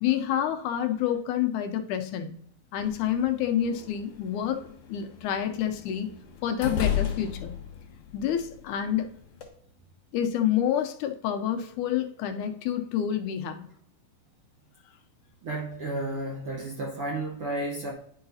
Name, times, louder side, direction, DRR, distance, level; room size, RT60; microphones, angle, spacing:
voice 1, 0.0-2.3 2.7-6.1 6.4-7.6 8.1-9.1 10.1-13.7, left 10 dB, 80° left, 6 dB, 2.1 m, -28 dB
sound 1, 2.8-9.5, left 9 dB, 60° left, 2.1 m, -35 dB
voice 2, 15.4-17.9, right 2 dB, 70° right, -2 dB, 1.4 m, -32 dB
10.5 x 4.8 x 2.7 m, 0.69 s
omnidirectional pair, 3.6 m